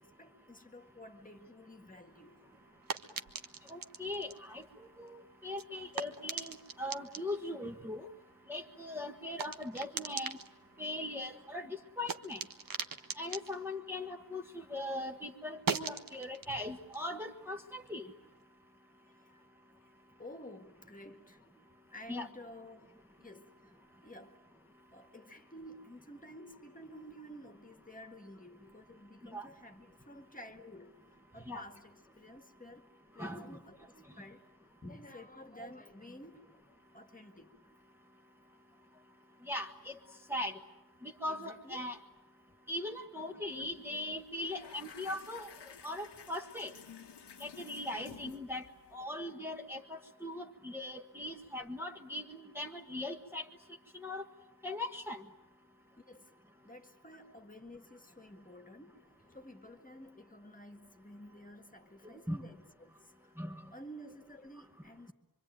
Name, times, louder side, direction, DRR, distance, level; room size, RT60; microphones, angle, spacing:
voice 1, 0.0-2.4 11.2-11.3 19.3-19.4 20.2-21.5 21.9-22.9 23.2-23.5 24.0-24.4 24.9-31.0 31.3-32.9 33.1-34.4 34.8-36.6 36.9-37.5 41.3-41.8 43.6-44.1 56.1-56.3 56.6-63.0 63.7-65.1, left 1 dB, 20° left, 1.8 m, -52 dB
sound 1, 2.0-14.8 15.1-18.3, right 5 dB, 55° right, 1.4 m, -44 dB
voice 2, 3.7-5.2 5.4-8.1 8.5-10.4 10.8-12.4 13.2-18.1 22.1-22.3 29.3-29.5 31.5-31.6 33.2-33.6 39.5-40.0 40.3-40.6 41.0-42.0 42.7-45.5 45.8-46.7 47.4-48.7 48.9-53.4 53.9-54.2 54.6-55.2 62.3-62.4 63.4-63.6, left 1 dB, 5° right, 1.4 m, -40 dB
sound 2, 43.5-43.7 44.0-49.0, left 7 dB, 85° left, 1.6 m, -53 dB
25.5 x 25.0 x 9.1 m
wide cardioid pair, 130°, 40 cm